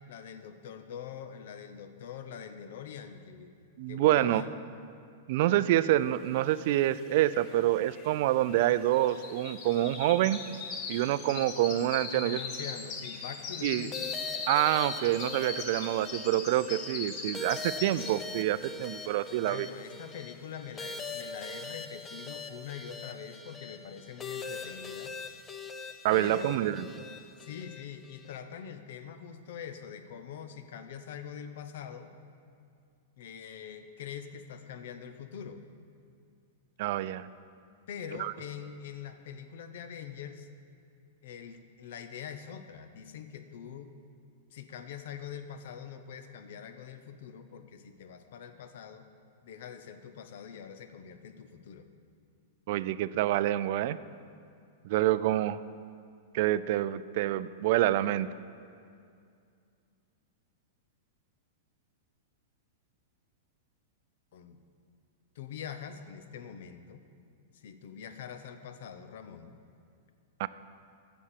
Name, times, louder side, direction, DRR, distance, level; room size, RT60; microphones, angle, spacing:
voice 1, 0.1-3.6 3.9-4.5 12.1-14.1 19.4-25.1 26.1-26.6 27.4-32.1 33.2-35.6 37.9-40.5 41.2-43.9 44.5-49.1 49.4-51.9 64.3-64.6 65.3-67.0 67.5-69.6, left 8 dB, 70° left, 9 dB, 0.7 m, -44 dB
voice 2, 3.8-4.4 5.3-10.4 10.9-12.4 13.6-13.9 14.5-19.7 26.0-26.8 36.8-37.2 38.2-38.3 52.7-54.0 54.8-55.6 56.3-58.3 70.4-70.5, right 14 dB, 55° right, 15 dB, 0.3 m, -27 dB
sound 1, 6.7-6.8 7.0-18.4 18.8-19.1 19.6-19.7, left 5 dB, 40° left, 1.2 m, -40 dB
sound 2, 13.9-28.4, left 4 dB, 20° left, 0.6 m, -43 dB
7.3 x 7.0 x 8.2 m, 2.3 s
hypercardioid pair, 125°, 0 cm